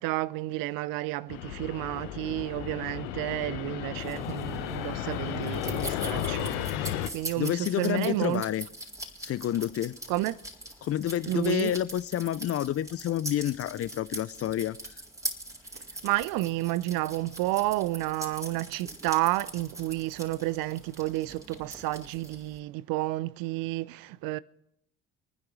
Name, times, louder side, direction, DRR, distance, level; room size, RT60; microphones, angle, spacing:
voice 1, 0.0-8.4 10.1-10.4 11.3-11.7 16.0-24.4, right 18 dB, 60° right, 0.6 m, -31 dB
Fixed-wing aircraft airplane, 1.3-7.1, left 11 dB, 70° left, 0.9 m, -34 dB
sound 1, 4.0-22.6, right 2 dB, 10° right, 3.8 m, -43 dB
voice 2, 7.4-8.7 9.2-10.0 10.8-14.8, left 12 dB, 40° left, 0.6 m, -29 dB
24.0 x 9.7 x 6.1 m
hypercardioid pair, 60°, 37 cm